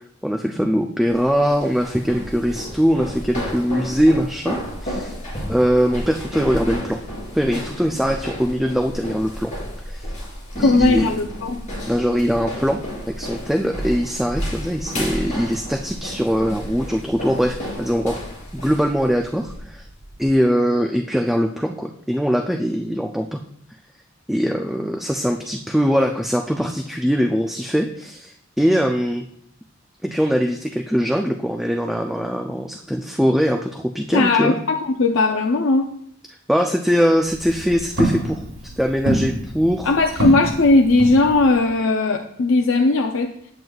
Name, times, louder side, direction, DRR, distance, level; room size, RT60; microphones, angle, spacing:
voice 1, 0.2-5.2 5.5-7.0 7.3-9.5 9.9-10.1 10.6-11.1 11.9-12.8 13.2-18.2 18.5-19.9 20.2-23.4 24.3-29.2 30.0-34.6 36.5-38.4 38.8-40.2, equal, ahead, 4 dB, 0.3 m, -21 dB
sound 1, 1.1-20.3, equal, 35° left, 3.0 m, -32 dB
voice 2, 10.6-11.6 34.1-35.9 39.9-43.3, left 3 dB, 70° left, 3 dB, 0.5 m, -18 dB
Walk footsteps, 37.1-41.7, right 1 dB, 70° right, 3.3 m, -27 dB
9.1 x 7.9 x 2.3 m, 0.70 s
head